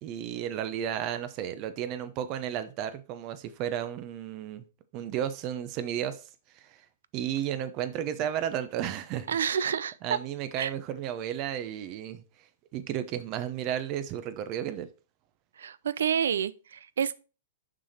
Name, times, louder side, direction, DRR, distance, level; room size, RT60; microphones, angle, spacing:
voice 1, 0.0-4.6 4.9-6.2 6.5-6.8 7.1-9.3 10.0-12.2 12.7-14.9, right 10 dB, 40° right, 0.7 m, -33 dB
voice 2, 9.3-10.2 10.6-10.7 15.6-17.2, right 8 dB, 80° right, 0.5 m, -29 dB
6.1 x 4.9 x 4.2 m
hypercardioid pair, 130°, 0 cm